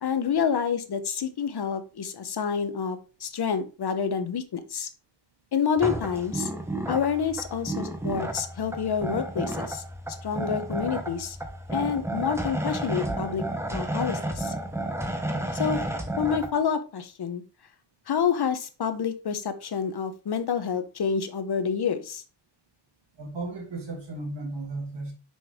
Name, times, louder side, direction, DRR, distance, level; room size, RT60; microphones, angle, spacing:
voice 1, 0.0-4.9 5.5-6.5 6.9-9.8 10.2-11.4 11.7-13.4 13.7-14.5 15.5-15.8 16.2-17.4 18.1-22.2, left 7 dB, 65° left, 0.9 m, -28 dB
sound 1, 5.8-16.5, right 1 dB, 5° right, 0.8 m, -32 dB
voice 2, 23.2-25.1, right 2 dB, 90° right, 2.5 m, -35 dB
6.3 x 5.4 x 3.5 m
wide cardioid pair, 175°, 42 cm